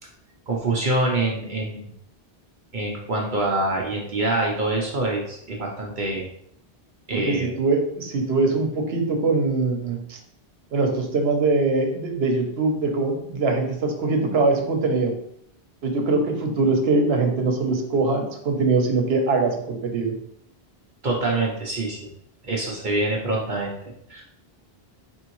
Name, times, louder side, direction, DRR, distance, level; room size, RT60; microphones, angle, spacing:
voice 1, 0.5-1.9 2.7-6.3 7.1-7.5 21.0-22.0 22.4-23.7 24.1-24.2, right 2 dB, 55° right, -2 dB, 0.8 m, -25 dB
voice 2, 7.1-10.2 10.7-15.1 15.8-20.1, right 3 dB, 75° right, 3 dB, 1.0 m, -22 dB
4.4 x 3.6 x 3.0 m, 0.71 s
omnidirectional pair, 1.1 m